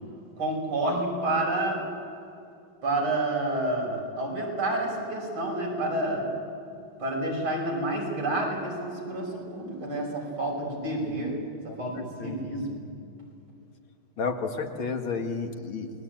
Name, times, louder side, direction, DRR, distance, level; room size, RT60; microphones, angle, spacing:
voice 1, 0.4-1.8 2.8-6.2 7.0-11.4 11.6-12.8, right 2 dB, 80° right, -1 dB, 6.6 m, -29 dB
voice 2, 11.7-12.4 14.2-15.9, left 4 dB, 70° left, 4 dB, 2.8 m, -32 dB
29.0 x 21.0 x 9.0 m, 2.6 s
omnidirectional pair, 2.3 m